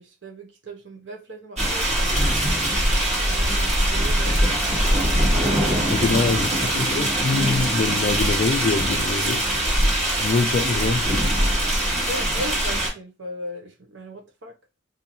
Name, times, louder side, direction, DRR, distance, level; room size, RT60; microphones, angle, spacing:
voice 1, 0.0-2.2 2.9-5.4 10.7-10.8 11.9-14.5, equal, 60° right, 0.9 m, -38 dB
sound 1, 1.6-12.9, right 1 dB, 35° right, 1.5 m, -22 dB
voice 2, 5.8-9.5 10.2-11.3, left 4 dB, 40° left, 0.3 m, -24 dB
4.3 x 2.7 x 2.6 m
head